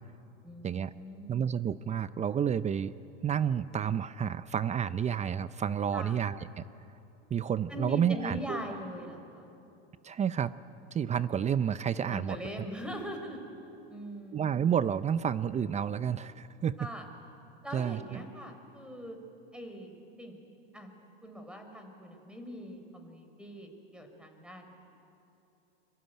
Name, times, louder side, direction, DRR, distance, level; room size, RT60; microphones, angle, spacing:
voice 1, 0.4-1.5 5.9-6.2 7.7-9.5 11.9-13.4 13.9-14.7 16.8-17.0 17.6-19.2 19.5-20.4 20.7-20.9 21.2-24.7, equal, 5° right, 5 dB, 4.5 m, -42 dB
voice 2, 1.3-2.9 3.2-6.6 7.3-8.8 10.0-10.5 10.9-12.7 14.3-16.8 17.7-18.2, right 8 dB, 25° right, 15 dB, 0.6 m, -30 dB
24.0 x 23.0 x 9.2 m, 2.8 s
hypercardioid pair, 105°, 30 cm